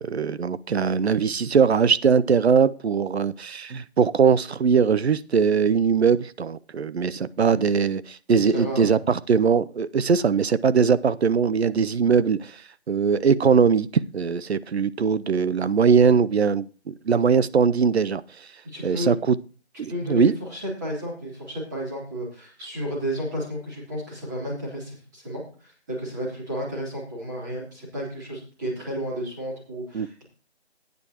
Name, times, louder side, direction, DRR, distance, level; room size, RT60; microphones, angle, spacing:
voice 1, 0.0-12.6 12.9-18.5 18.8-19.4 19.8-20.3 29.9-30.1, right 6 dB, 70° right, 0.7 m, -21 dB
voice 2, 8.5-8.9 18.6-19.1 19.9-30.2, equal, 15° right, 3.3 m, -32 dB
15.5 x 9.5 x 2.9 m
figure-of-eight pair, 175°, 33 cm